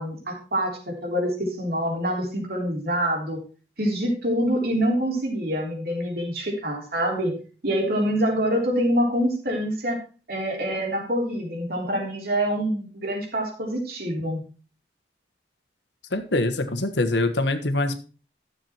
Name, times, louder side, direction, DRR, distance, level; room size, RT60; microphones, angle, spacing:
voice 1, 0.0-3.4 3.8-7.4 7.6-10.0 10.3-14.4, equal, 55° right, 0 dB, 3.5 m, -25 dB
voice 2, 16.1-18.0, left 2 dB, 75° left, 7 dB, 1.3 m, -24 dB
12.5 x 7.3 x 4.4 m, 0.36 s
head